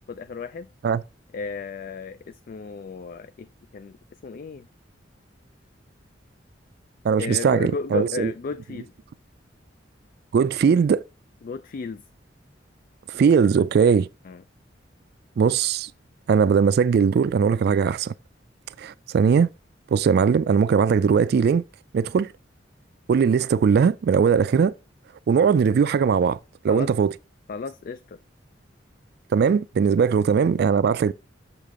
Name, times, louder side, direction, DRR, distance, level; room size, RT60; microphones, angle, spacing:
voice 1, 0.1-0.7 1.3-4.7 7.2-8.9 11.4-12.0 14.2-14.4 26.7-26.9 27.5-28.2 30.0-30.1, left 5 dB, 50° left, 0.3 m, -34 dB
voice 2, 7.0-8.3 10.3-11.0 13.1-14.1 15.4-15.9 16.3-18.1 18.8-19.5 19.9-21.6 21.9-22.3 23.1-24.7 25.3-26.4 26.6-27.1 29.3-31.1, right 6 dB, 55° right, 0.3 m, -20 dB
6.7 x 6.4 x 3.6 m
head